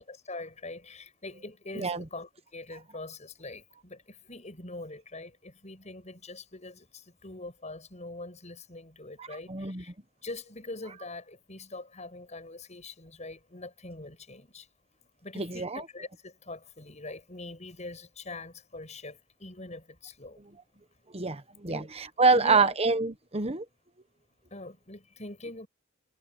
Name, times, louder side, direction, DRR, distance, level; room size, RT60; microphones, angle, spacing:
voice 1, 0.0-9.9 10.2-14.7 15.2-20.4 21.7-21.9 22.3-22.8 24.5-25.7, left 2 dB, 35° left, 7.5 m, -43 dB
voice 2, 9.2-9.8 15.3-15.9 21.1-23.6, right 4 dB, 30° right, 1.2 m, -26 dB
head